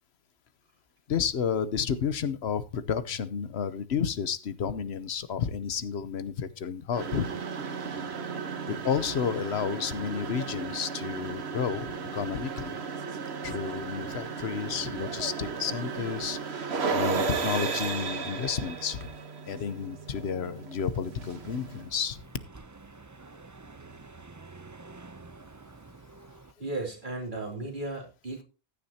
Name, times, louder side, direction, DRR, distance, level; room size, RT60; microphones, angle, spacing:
voice 1, 1.1-7.3 8.6-11.9 12.1-12.8 13.4-19.1 19.5-22.2, left 7 dB, 85° left, 14 dB, 1.1 m, -31 dB
sound 1, 6.9-21.8, right 5 dB, 85° right, 1.4 m, -34 dB
sound 2, 21.1-26.5, right 3 dB, 20° right, 0.5 m, -49 dB
voice 2, 26.6-28.4, right 2 dB, 50° right, 1 dB, 3.3 m, -35 dB
15.0 x 10.5 x 2.8 m, 0.31 s
omnidirectional pair, 1.1 m